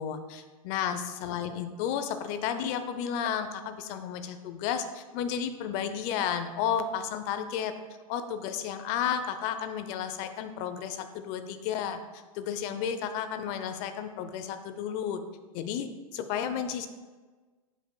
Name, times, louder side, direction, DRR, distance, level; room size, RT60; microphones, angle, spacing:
voice 1, 0.0-7.7 8.1-15.2 15.5-16.9, left 8 dB, 40° left, 9 dB, 0.7 m, -32 dB
12.0 x 5.4 x 2.3 m, 1.3 s
hypercardioid pair, 120°, 18 cm